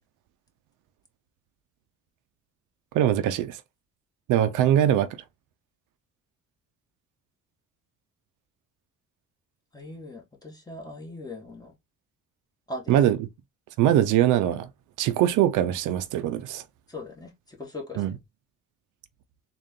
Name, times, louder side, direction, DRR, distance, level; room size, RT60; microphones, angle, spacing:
voice 1, 2.9-3.6 4.3-5.1 12.9-13.3 13.8-14.7 15.0-16.6 18.0-18.2, right 11 dB, 90° right, 0.5 m, -22 dB
voice 2, 9.7-11.7 12.7-12.9 16.9-18.2, left 2 dB, 15° left, 1.7 m, -40 dB
3.7 x 2.5 x 3.6 m
cardioid pair, 90°, 30 cm